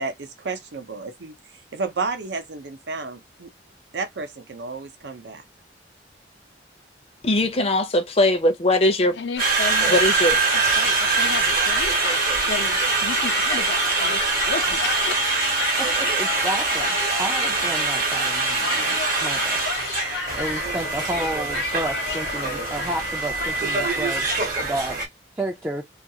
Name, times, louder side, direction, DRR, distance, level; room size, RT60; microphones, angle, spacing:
voice 1, 0.0-1.4 1.7-3.5 3.9-5.4, right 4 dB, 75° right, 0.6 m, -31 dB
voice 2, 7.2-9.2 9.9-10.4, left 1 dB, 35° left, 0.6 m, -20 dB
voice 3, 9.2-10.0 10.5-11.9 12.5-15.2, left 5 dB, 85° left, 0.6 m, -32 dB
sound 1, 9.4-24.4, left 4 dB, 65° left, 1.0 m, -32 dB
Conversation, 9.4-25.1, right 4 dB, 50° right, 0.8 m, -23 dB
voice 4, 15.8-19.6 20.1-24.3 24.6-25.0 25.4-25.8, right 1 dB, 15° right, 0.4 m, -31 dB
2.4 x 2.3 x 2.7 m
head